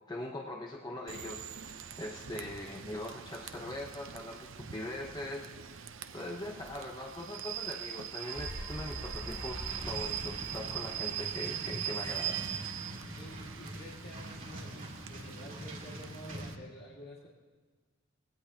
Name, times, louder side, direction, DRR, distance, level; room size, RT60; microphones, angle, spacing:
voice 1, 0.1-12.4, left 1 dB, 20° left, 0 dB, 0.8 m, -42 dB
Rain / Train, 1.1-16.6, right 10 dB, 70° right, 0.7 m, -42 dB
sound 1, 8.2-12.2, equal, 10° right, 5.9 m, -44 dB
sound 2, 9.7-16.5, right 1 dB, 40° right, 2.6 m, -44 dB
voice 2, 13.2-17.3, left 1 dB, 50° left, -5 dB, 2.0 m, -50 dB
21.5 x 17.0 x 2.9 m, 1.5 s
head